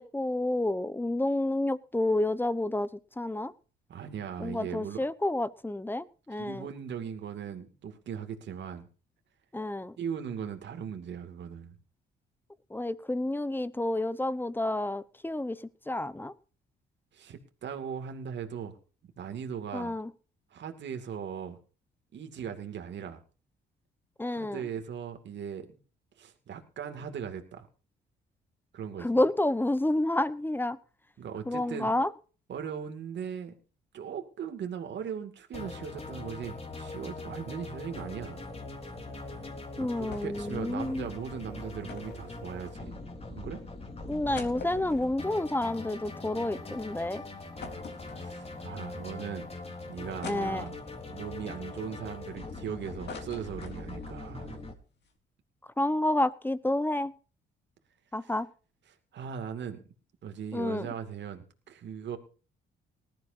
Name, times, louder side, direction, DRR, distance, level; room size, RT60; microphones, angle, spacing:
voice 1, 0.0-2.9 3.2-3.5 4.4-6.7 9.5-9.9 12.7-16.3 19.7-20.1 24.2-24.6 29.0-30.8 31.5-32.1 39.8-41.1 44.1-47.2 50.2-50.6 55.8-57.1 58.1-58.5 60.5-60.9, left 1 dB, 10° left, 15 dB, 1.0 m, -29 dB
voice 2, 3.9-5.0 6.4-8.9 10.0-11.8 17.1-18.8 19.2-20.0 20.5-21.6 22.1-23.2 24.3-25.7 26.2-27.7 28.7-29.2 31.2-32.0 32.5-33.5 33.9-38.4 39.8-42.9 43.3-43.6 48.2-49.5 49.9-50.8 51.1-54.7 58.2-58.3 59.1-59.8 60.2-62.2, right 7 dB, 65° right, 6 dB, 2.5 m, -39 dB
sound 1, 35.5-54.7, left 2 dB, 30° left, 3.7 m, -42 dB
sound 2, 40.1-40.5 40.8-40.9 41.9-43.1 43.7-43.8 44.1-46.5 46.9-47.0 47.6-48.7 49.3-49.4 50.2-51.1 51.6-52.6 52.8-54.2 54.5-54.6 54.9-55.1, left 5 dB, 60° left, 3.9 m, -45 dB
19.5 x 13.5 x 2.8 m, 0.37 s
cardioid pair, 90°, 20 cm